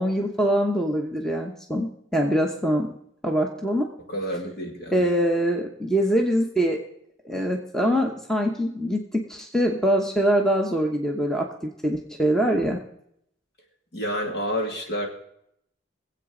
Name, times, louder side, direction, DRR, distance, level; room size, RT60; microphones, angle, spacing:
voice 1, 0.0-2.9 3.2-3.9 4.9-6.8 7.2-12.8, equal, 5° left, 1 dB, 0.9 m, -24 dB
voice 2, 4.1-5.1 13.9-15.1, equal, 55° left, 1 dB, 2.3 m, -29 dB
22.5 x 8.1 x 3.8 m, 0.73 s
head